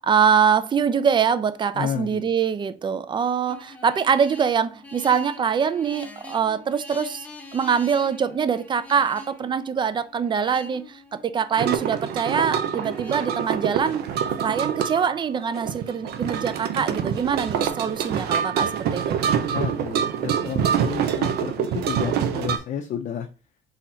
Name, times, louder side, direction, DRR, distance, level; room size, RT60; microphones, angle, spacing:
voice 1, 0.0-7.3 7.5-14.1 14.4-19.2, right 7 dB, 30° right, 0.4 m, -23 dB
voice 2, 1.7-2.3 19.5-23.3, left 8 dB, 50° left, 0.6 m, -31 dB
sound 1, 3.5-14.0, left 2 dB, 10° left, 0.8 m, -44 dB
sound 2, 11.6-22.6, right 8 dB, 70° right, 0.6 m, -26 dB
3.9 x 2.9 x 4.2 m
cardioid pair, 110°, 17 cm